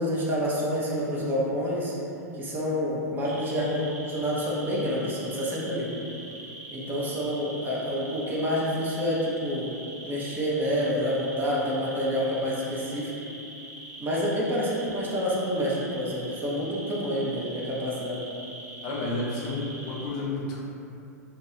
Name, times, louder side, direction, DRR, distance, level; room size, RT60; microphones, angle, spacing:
voice 1, 0.0-2.0 2.3-5.9 6.7-9.7 10.0-13.1 14.0-18.2, equal, 20° right, -6 dB, 0.5 m, -28 dB
sound 1, 3.2-20.1, right 2 dB, 85° right, 0.5 m, -43 dB
voice 2, 18.8-20.6, left 2 dB, 45° left, -4 dB, 0.5 m, -31 dB
2.3 x 2.2 x 2.8 m, 2.7 s
figure-of-eight pair, 100°, 9 cm